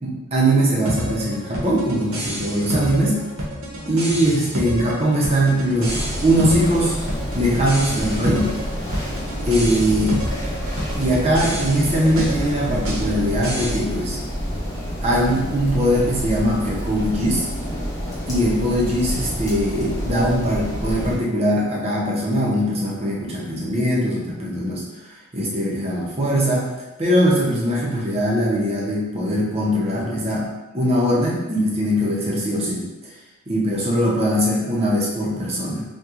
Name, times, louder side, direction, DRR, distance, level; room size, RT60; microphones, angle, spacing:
voice 1, 0.0-3.2 3.9-7.0 7.3-8.5 9.4-10.2 11.0-14.2 15.0-17.5 18.3-24.8 25.3-26.7 27.0-30.5 30.7-33.1 33.5-35.8, equal, 30° right, -4 dB, 0.6 m, -21 dB
sound 1, 0.8-13.8, equal, 70° right, 0.8 m, -29 dB
sound 2, 5.8-21.2, equal, 15° left, 0.6 m, -28 dB
2.9 x 2.2 x 3.5 m, 1.1 s
head